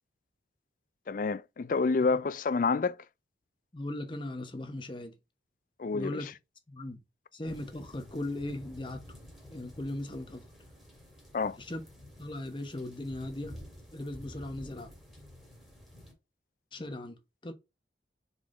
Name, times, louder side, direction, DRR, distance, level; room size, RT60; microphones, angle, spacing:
voice 1, 1.1-3.0 5.8-6.2 11.3-11.6, left 4 dB, 45° left, 0.4 m, -28 dB
voice 2, 3.7-5.1 5.9-6.3 6.7-7.0 7.3-9.0 9.5-10.4 11.6-11.8 12.2-13.6 13.9-14.9 16.7-17.5, left 1 dB, 25° left, 1.0 m, -38 dB
sound 1, 7.5-16.1, equal, ahead, 1.9 m, -51 dB
4.7 x 4.2 x 4.8 m
head